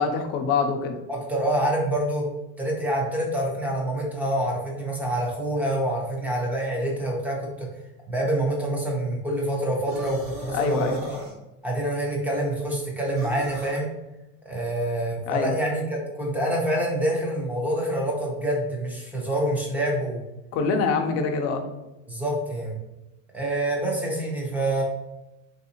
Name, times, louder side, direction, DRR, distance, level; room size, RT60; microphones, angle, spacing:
voice 1, 0.0-0.9 10.5-11.0 15.3-15.5 20.5-21.6, left 5 dB, 40° left, 4 dB, 0.5 m, -24 dB
voice 2, 1.1-2.3 2.6-7.7 8.1-11.2 11.6-13.9 14.5-20.2 22.1-22.7 23.3-24.8, right 1 dB, 5° right, -3 dB, 0.6 m, -26 dB
sound 1, 9.9-11.4 13.1-13.8, right 1 dB, 30° right, 1.2 m, -40 dB
3.5 x 2.7 x 2.8 m, 0.97 s
supercardioid pair, 135°, 39 cm